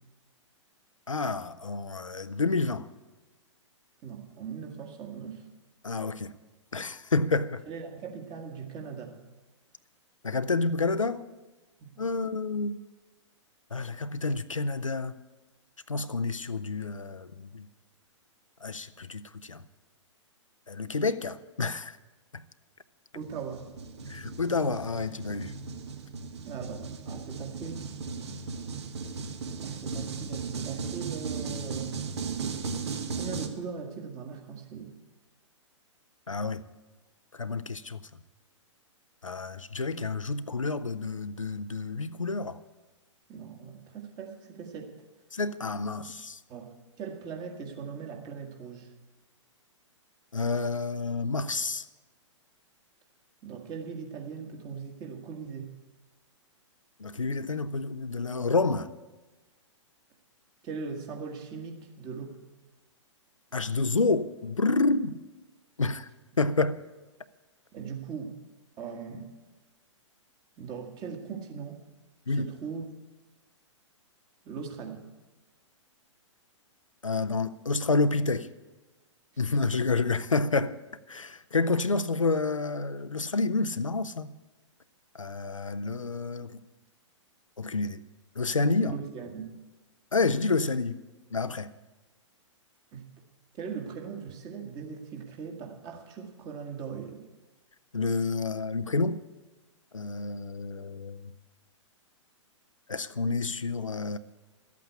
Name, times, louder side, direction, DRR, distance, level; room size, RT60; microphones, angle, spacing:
voice 1, 1.1-2.9 5.8-6.3 6.7-7.6 10.2-11.2 12.0-12.8 13.7-15.1 15.9-17.7 18.6-19.6 20.7-22.0 24.1-25.5 36.3-36.6 37.3-38.0 39.2-42.6 45.3-46.4 50.3-51.8 57.0-58.9 63.5-65.2 65.8-66.1 66.4-66.8 72.3-72.5 77.0-78.5 79.4-80.8 81.1-84.3 85.2-86.6 87.6-88.0 88.4-88.9 90.1-91.0 91.3-91.7 97.9-99.2 99.9-101.3 102.9-104.2, left 3 dB, 85° left, 0.6 m, -29 dB
voice 2, 4.0-5.4 7.7-9.2 11.8-12.0 23.1-23.7 26.5-27.9 29.6-32.1 33.1-34.9 43.3-44.9 46.5-48.9 53.4-55.8 60.6-62.4 67.7-68.4 68.8-69.3 70.6-71.8 72.3-72.8 74.5-75.0 88.8-89.6 92.9-93.0 93.5-97.2, right 6 dB, 25° right, 1.8 m, -40 dB
sound 1, 23.2-33.5, right 5 dB, 60° right, 1.3 m, -36 dB
13.0 x 8.4 x 8.4 m
figure-of-eight pair, 115°, 16 cm